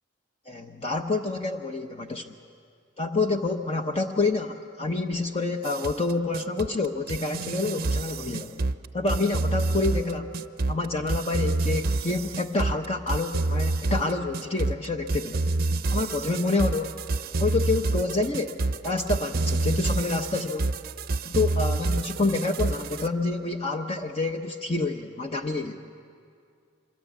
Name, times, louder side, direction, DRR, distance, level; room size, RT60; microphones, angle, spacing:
voice 1, 0.5-2.3 3.0-8.6 8.9-10.3 10.7-15.4 15.9-17.0 17.4-20.7 21.2-25.8, left 3 dB, 30° left, 4 dB, 0.9 m, -28 dB
sound 1, 5.6-23.1, right 2 dB, 50° right, 0.6 m, -28 dB
25.5 x 23.5 x 8.3 m, 2.3 s
head